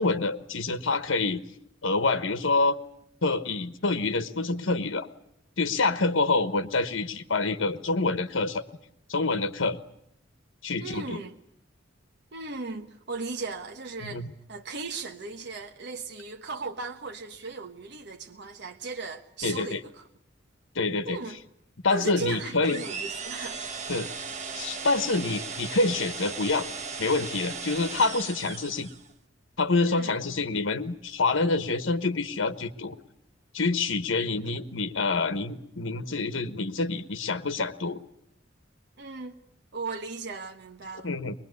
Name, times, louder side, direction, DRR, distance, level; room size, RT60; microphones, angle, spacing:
voice 1, 0.0-1.4 1.8-2.8 3.2-5.1 5.6-8.6 9.1-9.8 10.6-11.2 14.0-14.3 19.4-19.8 20.7-21.2 21.8-22.8 23.9-24.1 24.5-26.7 27.0-28.9 29.6-33.0 33.5-38.0 41.0-41.3, left 3 dB, 85° left, 1.2 m, -27 dB
voice 2, 10.8-11.3 12.3-20.1 21.0-21.4 21.9-23.6 29.8-30.2 39.0-39.4 39.7-41.1, right 4 dB, 60° right, 1.2 m, -37 dB
sound 1, 22.6-29.1, right 5 dB, 35° right, 1.6 m, -37 dB
23.0 x 21.0 x 9.5 m
head